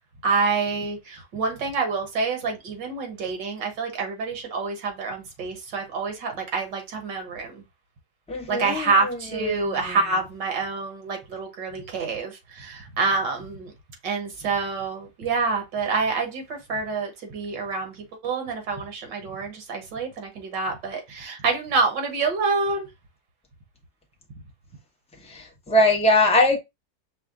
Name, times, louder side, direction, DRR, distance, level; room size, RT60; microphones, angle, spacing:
voice 1, 0.2-7.6 8.5-13.7 14.0-22.9, right 4 dB, 70° right, 1.8 m, -27 dB
voice 2, 8.3-9.9 25.2-26.6, left 1 dB, 5° left, 0.4 m, -22 dB
5.6 x 2.1 x 3.6 m
omnidirectional pair, 2.0 m